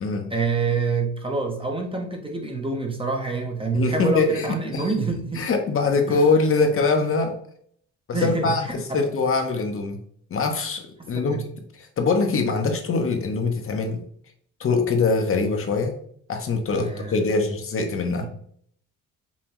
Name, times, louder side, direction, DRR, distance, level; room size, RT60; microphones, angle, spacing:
voice 1, 0.3-5.4 6.1-6.2 8.1-9.1 11.0-11.4 16.7-17.4 18.2-18.3, right 4 dB, 20° right, 3 dB, 0.7 m, -27 dB
voice 2, 3.7-4.9 5.3-7.4 8.1-10.0 10.3-11.4 11.8-14.0 14.6-15.9 16.3-18.3, left 4 dB, 45° left, 4 dB, 0.8 m, -23 dB
5.5 x 2.3 x 3.0 m, 0.62 s
cardioid pair, 90°, 30 cm